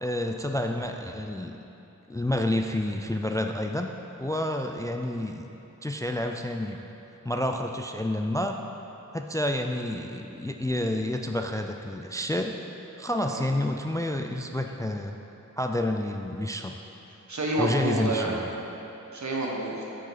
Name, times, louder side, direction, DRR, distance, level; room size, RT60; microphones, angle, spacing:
voice 1, 0.0-1.6 2.1-3.9 4.2-5.5 5.8-6.8 7.2-8.6 9.1-12.5 13.0-15.2 15.6-16.7 17.6-18.5, left 1 dB, 10° left, 4 dB, 0.3 m, -29 dB
voice 2, 17.3-18.4 19.1-19.8, right 2 dB, 65° right, -2 dB, 1.2 m, -28 dB
8.8 x 5.0 x 4.1 m, 2.9 s
wide cardioid pair, 50°, 31 cm